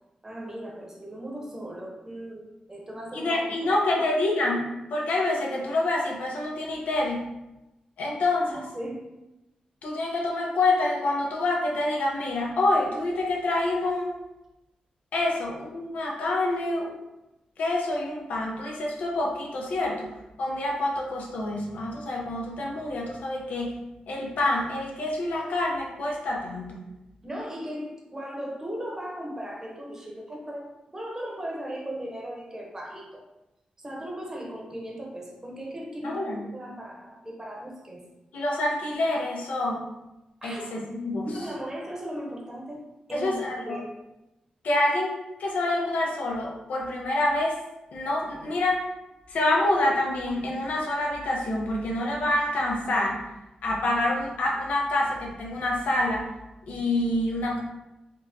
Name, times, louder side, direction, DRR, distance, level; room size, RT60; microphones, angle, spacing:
voice 1, 0.2-3.3 3.6-4.1 8.5-9.0 27.2-33.2 33.8-38.0 40.4-40.7 41.2-42.8 43.1-43.9, equal, 20° right, -2 dB, 0.9 m, -37 dB
voice 2, 3.1-7.3 8.0-8.6 9.8-14.1 15.1-16.9 17.6-20.1 20.4-23.8 24.1-26.8 36.0-36.5 38.3-39.9 40.4-41.3 43.1-43.8 44.6-45.1 45.4-47.6 47.9-48.8 49.3-53.2 53.6-56.3 56.7-57.6, left 2 dB, 85° left, -1 dB, 0.7 m, -27 dB
4.1 x 2.3 x 2.7 m, 0.98 s
cardioid pair, 95°, 2 cm